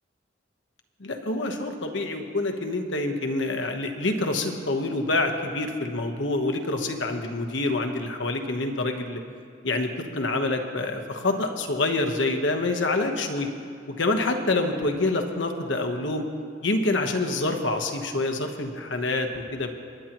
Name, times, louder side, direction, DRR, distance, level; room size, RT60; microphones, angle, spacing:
voice 1, 1.0-9.2 9.6-13.5 13.9-16.3 16.6-19.7, left 2 dB, 70° left, 4 dB, 1.2 m, -26 dB
29.5 x 10.0 x 3.0 m, 2.3 s
head